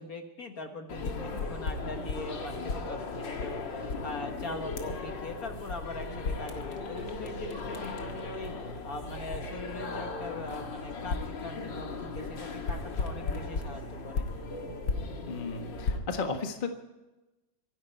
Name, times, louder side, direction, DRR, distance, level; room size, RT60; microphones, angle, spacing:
voice 1, 0.0-8.5 8.8-14.3, left 2 dB, 50° left, 4 dB, 1.8 m, -41 dB
sound 1, 0.9-16.0, left 3 dB, 65° left, 2.5 m, -36 dB
voice 2, 15.3-16.7, left 4 dB, 25° left, 4 dB, 1.5 m, -34 dB
25.5 x 11.5 x 4.5 m, 1.0 s
omnidirectional pair, 2.2 m